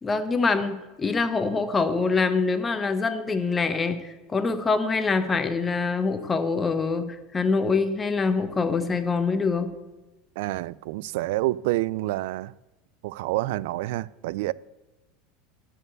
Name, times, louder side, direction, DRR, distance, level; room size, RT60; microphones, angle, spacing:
voice 1, 0.0-9.7, left 4 dB, 15° left, 0.9 m, -25 dB
voice 2, 10.4-12.5 13.0-14.5, right 17 dB, 75° right, 0.3 m, -28 dB
10.5 x 7.0 x 7.9 m
supercardioid pair, 150°, 0 cm